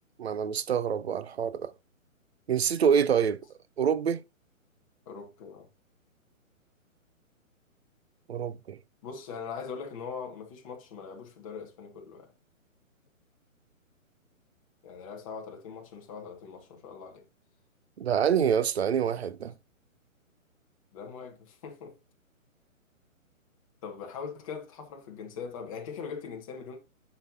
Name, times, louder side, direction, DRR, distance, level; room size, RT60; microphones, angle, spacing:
voice 1, 0.2-1.7 2.5-3.4 3.8-4.2 8.3-8.8 18.0-19.5, right 7 dB, 50° right, 0.6 m, -26 dB
voice 2, 5.0-5.7 9.0-12.3 14.8-17.2 20.9-22.0 23.8-26.8, left 6 dB, 25° left, 1.5 m, -41 dB
9.6 x 5.9 x 2.7 m
hypercardioid pair, 160°, 41 cm